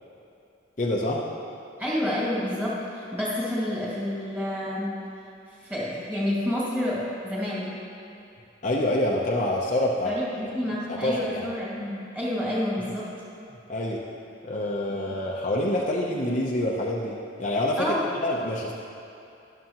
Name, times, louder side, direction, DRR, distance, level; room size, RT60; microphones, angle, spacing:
voice 1, 0.8-1.3 8.6-10.1 10.4-10.6 10.9-11.5 13.7-14.0 14.4-18.7, left 1 dB, 40° left, -3 dB, 0.7 m, -26 dB
voice 2, 1.8-5.0 5.6-7.7 10.0-13.1 14.9-15.0 17.8-18.1, left 1 dB, 10° right, -7 dB, 2.3 m, -29 dB
13.0 x 11.0 x 3.0 m, 2.8 s
head